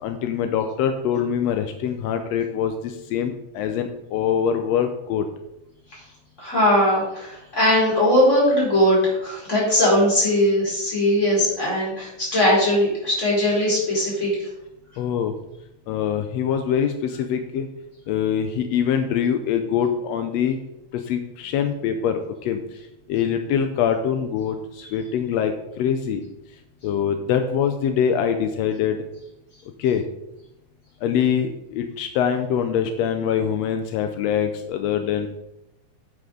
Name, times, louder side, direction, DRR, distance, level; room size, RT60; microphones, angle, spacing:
voice 1, 0.0-5.2 15.0-15.3 15.9-17.7 18.1-20.6 21.1-22.6 23.1-26.2 26.8-29.0 29.8-30.0 31.0-35.3, left 8 dB, 85° left, 7 dB, 1.5 m, -24 dB
voice 2, 6.4-14.5 24.8-24.9, left 1 dB, 20° left, -5 dB, 4.2 m, -20 dB
8.6 x 7.7 x 3.8 m, 0.86 s
omnidirectional pair, 3.6 m